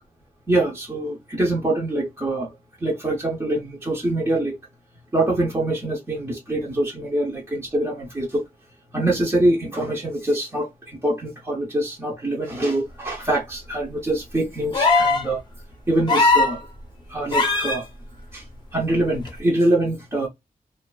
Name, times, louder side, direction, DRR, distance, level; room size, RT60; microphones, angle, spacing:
voice 1, 0.5-2.5 2.8-4.6 5.1-8.4 8.9-15.4 15.9-16.7 17.1-17.8 18.3-18.5 18.7-20.3, right 1 dB, 20° right, 0.6 m, -24 dB
sound 1, 14.7-15.3 16.1-16.6 17.3-17.8 19.3-19.4, left 3 dB, 30° left, 0.7 m, -18 dB
2.5 x 2.2 x 2.2 m
wide cardioid pair, 175°, 15 cm